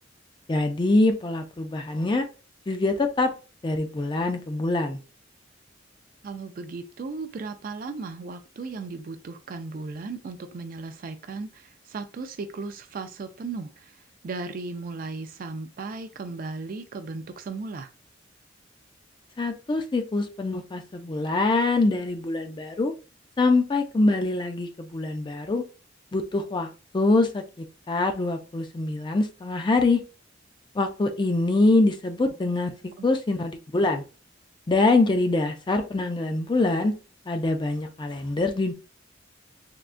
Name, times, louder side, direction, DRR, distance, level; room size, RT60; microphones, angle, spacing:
voice 1, 0.5-2.3 2.7-3.3 3.6-5.0 19.4-22.9 23.4-25.6 26.1-27.4 27.9-30.0 30.8-32.7 33.0-34.0 34.7-36.9 37.3-38.7, left 2 dB, 25° left, 0.4 m, -24 dB
voice 2, 6.2-14.0 14.2-17.9 33.0-33.1, right 3 dB, 50° right, 0.4 m, -36 dB
3.6 x 2.3 x 2.4 m
head